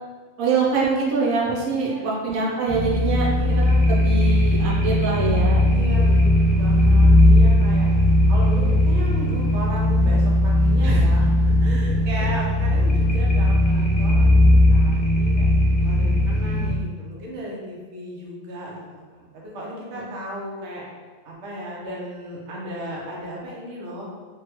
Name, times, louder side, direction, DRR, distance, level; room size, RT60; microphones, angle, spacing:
voice 1, 0.4-3.3 3.9-5.7 10.8-11.1 16.0-16.2 19.9-20.0, right 4 dB, 85° right, -4 dB, 1.1 m, -24 dB
voice 2, 1.7-2.0 3.2-3.8 5.7-7.9 8.3-15.5 15.8-18.8 19.1-20.8 21.2-24.1, equal, 65° right, -4 dB, 1.0 m, -35 dB
sound 1, 2.7-16.7, left 1 dB, 45° left, 0.7 m, -18 dB
3.5 x 2.1 x 2.9 m, 1.4 s
omnidirectional pair, 1.4 m